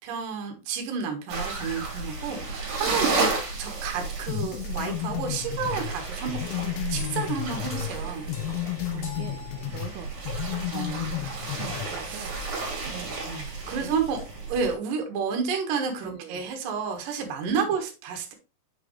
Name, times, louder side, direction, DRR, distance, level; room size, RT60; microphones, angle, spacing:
voice 1, 0.0-3.3 3.6-6.4 6.9-8.3 10.7-11.1 12.1-12.3 13.3-18.3, right 6 dB, 65° right, 4 dB, 2.3 m, -30 dB
sound 1, 1.3-14.7, right 3 dB, 45° right, 2.8 m, -33 dB
sound 2, 4.3-8.0 8.3-9.9 10.3-11.9, left 17 dB, 85° left, 3.2 m, -32 dB
sound 3, 7.0-10.3, left 2 dB, 50° left, 2.2 m, -45 dB
voice 2, 8.8-9.4 9.7-10.3 10.5-11.3 11.6-13.3 13.6-14.0 16.0-16.6 17.5-17.9, right 10 dB, 85° right, 4 dB, 2.2 m, -43 dB
7.7 x 5.1 x 3.1 m, 0.31 s
omnidirectional pair, 5.4 m